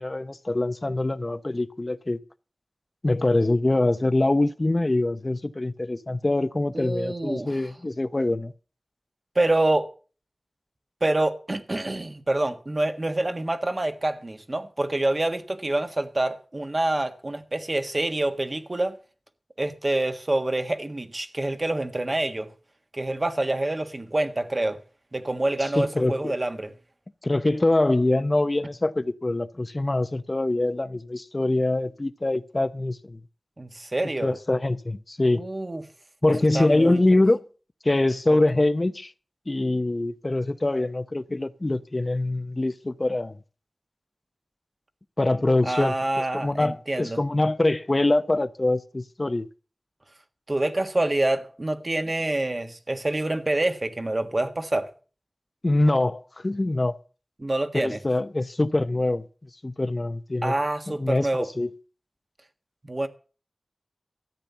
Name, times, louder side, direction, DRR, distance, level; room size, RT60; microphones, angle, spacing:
voice 1, 0.0-2.2 3.0-8.5 25.8-26.3 27.2-33.2 34.2-35.4 36.2-37.4 37.8-39.1 39.5-43.4 45.2-45.9 46.3-49.5 55.6-57.0 57.7-59.2 59.6-60.6 61.0-61.7, left 2 dB, 40° left, 0.7 m, -24 dB
voice 2, 6.7-7.7 9.3-9.9 11.0-18.9 19.6-22.5 22.9-24.8 25.1-26.7 33.6-34.4 35.3-35.8 36.5-37.0 38.3-38.4 45.6-47.2 50.5-54.9 57.4-58.0 60.4-61.5 62.8-63.1, right 2 dB, 45° right, 1.5 m, -26 dB
13.5 x 9.0 x 6.9 m
wide cardioid pair, 60°, 0 cm